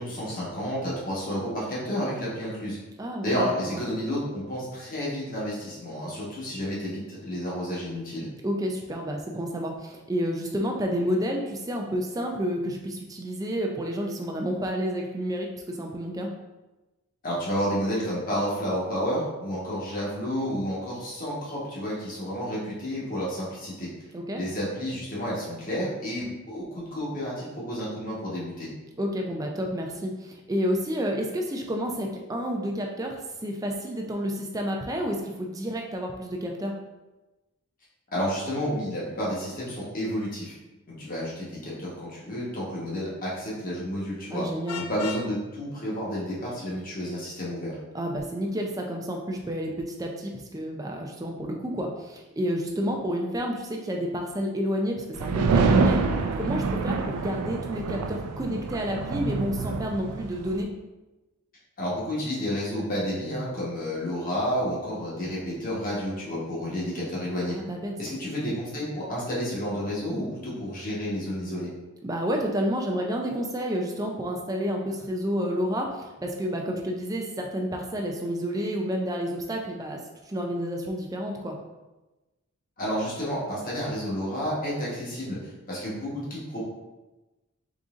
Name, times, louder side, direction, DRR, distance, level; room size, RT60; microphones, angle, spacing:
voice 1, 0.0-2.8 3.2-8.3 17.2-23.9 24.3-28.7 38.1-40.5 41.0-44.4 44.8-47.8 61.8-67.6 68.0-71.7 82.8-85.4 85.7-86.6, equal, 40° left, -6 dB, 1.1 m, -30 dB
voice 2, 3.0-3.8 8.4-16.3 24.1-24.4 29.0-36.8 44.3-44.8 47.9-60.7 67.5-68.2 72.0-80.0 80.3-81.6, equal, 15° right, 1 dB, 0.4 m, -30 dB
Vehicle horn car horn honking, 44.7-45.3, left 6 dB, 80° left, 0.3 m, -36 dB
storm hit, 55.2-60.6, right 4 dB, 90° right, 0.4 m, -26 dB
3.9 x 3.8 x 2.4 m, 1.1 s
head